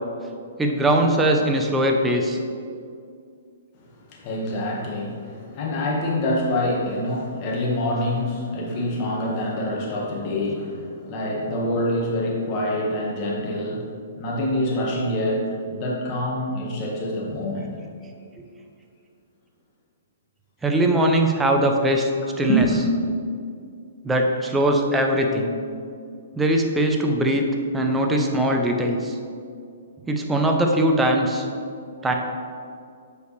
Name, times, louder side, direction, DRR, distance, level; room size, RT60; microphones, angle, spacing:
voice 1, 0.6-2.4 20.6-22.1 22.4-22.7 24.0-25.6 26.3-27.5 27.7-29.2 30.1-31.5 32.0-32.1, right 1 dB, 10° right, 2 dB, 0.7 m, -21 dB
voice 2, 4.1-17.7 22.5-22.7, left 1 dB, 35° left, -2 dB, 1.6 m, -26 dB
7.9 x 5.0 x 3.3 m, 2.3 s
hypercardioid pair, 135°, 0 cm